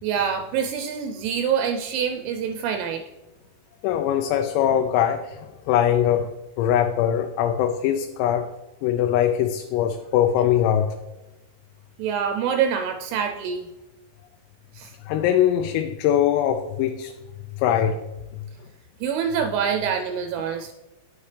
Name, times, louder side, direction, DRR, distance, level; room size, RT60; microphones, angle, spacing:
voice 1, 0.0-3.0 12.0-13.7 14.7-14.9 19.0-20.7, right 7 dB, 85° right, 5 dB, 2.8 m, -25 dB
voice 2, 3.8-8.5 8.8-10.9 15.0-17.1 17.6-18.0, left 10 dB, 90° left, 5 dB, 3.3 m, -22 dB
9.7 x 9.5 x 3.3 m, 1.0 s
omnidirectional pair, 5.9 m